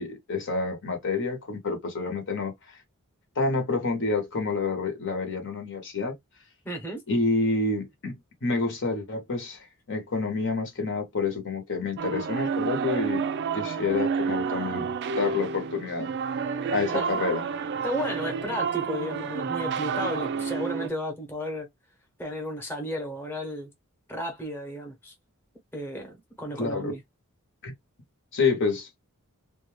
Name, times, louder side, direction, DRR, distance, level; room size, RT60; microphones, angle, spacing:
voice 1, 0.0-2.8 3.4-6.1 7.1-13.2 13.5-16.1 16.7-17.4 26.6-26.9 27.6-27.7 28.3-28.9, left 3 dB, 55° left, 0.9 m, -28 dB
voice 2, 6.6-7.0 16.9-17.1 17.8-21.7 22.2-23.7 24.1-25.1 25.7-27.0, equal, 10° left, 0.9 m, -33 dB
sound 1, 12.0-20.9, right 6 dB, 50° right, 0.4 m, -30 dB
2.5 x 2.2 x 3.2 m
head